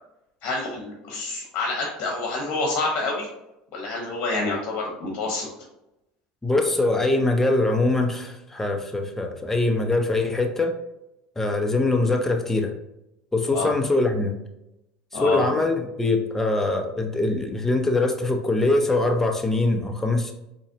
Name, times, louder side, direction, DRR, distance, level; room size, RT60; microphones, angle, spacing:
voice 1, 0.4-3.3 3.7-5.5 13.5-13.7 15.1-15.4, left 2 dB, 55° left, -1 dB, 1.1 m, -27 dB
voice 2, 6.4-10.7 11.4-12.7 13.3-14.3 15.1-20.3, left 2 dB, 10° left, 4 dB, 0.6 m, -23 dB
4.0 x 3.0 x 2.8 m, 0.88 s
supercardioid pair, 100°, 3 cm